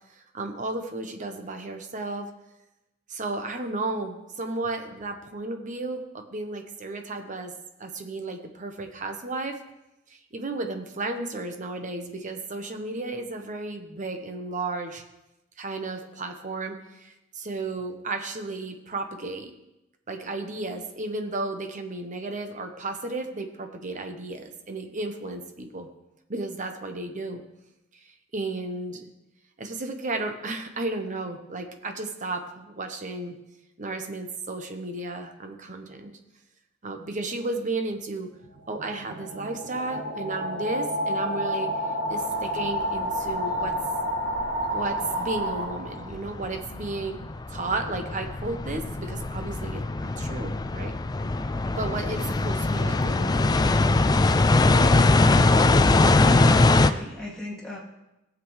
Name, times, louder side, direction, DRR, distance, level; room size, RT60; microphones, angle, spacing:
voice 1, 0.1-2.3 3.1-7.5 7.8-9.6 10.1-15.0 15.6-19.5 20.1-25.9 26.3-27.4 28.3-29.1 29.6-33.4 33.8-36.1 36.8-38.3 38.7-41.7 42.1-43.7 44.7-47.2 47.5-50.9 51.8-53.6, right 2 dB, 40° right, 5 dB, 1.0 m, -33 dB
sound 1, 38.4-46.2, equal, 60° right, 2.3 m, -30 dB
sound 2, 42.8-42.9 43.6-43.7 44.2-44.9 45.3-56.9, left 2 dB, 20° left, 0.3 m, -22 dB
voice 2, 56.1-57.8, left 1 dB, 5° left, -6 dB, 2.4 m, -34 dB
17.5 x 7.6 x 3.3 m, 0.93 s
head